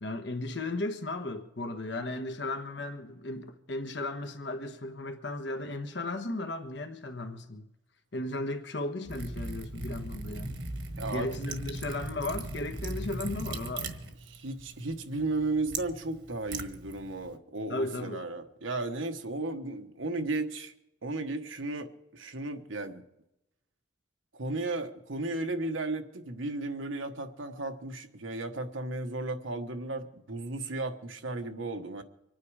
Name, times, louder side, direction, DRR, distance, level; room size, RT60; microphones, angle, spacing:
voice 1, 0.0-7.7 8.1-10.6 11.1-13.9 17.7-18.2, left 2 dB, 60° left, 1.2 m, -35 dB
Liquid, 9.1-17.3, right 2 dB, 60° right, 1.5 m, -39 dB
voice 2, 11.0-11.3 14.3-20.7 21.0-23.0 24.3-32.0, right 2 dB, 75° right, 1.3 m, -34 dB
25.5 x 9.5 x 4.9 m
head